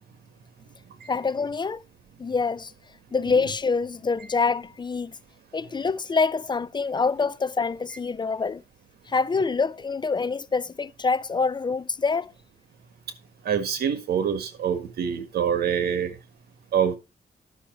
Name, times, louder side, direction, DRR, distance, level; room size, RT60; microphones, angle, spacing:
voice 1, 1.1-1.8 2.2-2.7 3.1-5.1 5.5-8.6 9.1-12.3, left 4 dB, 30° left, 0.4 m, -26 dB
voice 2, 13.5-16.2 16.7-17.0, right 8 dB, 90° right, 1.7 m, -25 dB
11.5 x 6.2 x 4.5 m
cardioid pair, 95°, 16 cm